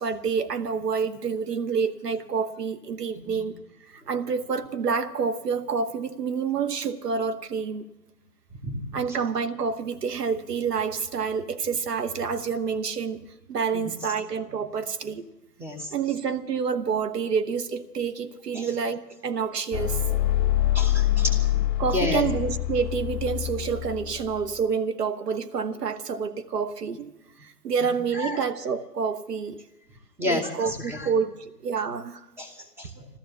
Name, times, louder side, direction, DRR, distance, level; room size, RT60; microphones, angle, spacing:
voice 1, 0.0-3.6 3.9-7.9 8.9-15.3 15.9-20.0 21.8-27.1 27.4-29.6 30.2-32.2, right 6 dB, 75° right, 1.2 m, -28 dB
voice 2, 15.6-15.9 18.5-18.7 20.7-21.4 21.9-22.2 27.8-28.4 30.2-31.1 32.4-33.1, left 2 dB, 5° right, 1.1 m, -31 dB
sound 1, 19.7-24.6, left 13 dB, 30° left, 1.7 m, -25 dB
14.0 x 13.5 x 7.0 m
hypercardioid pair, 135°, 49 cm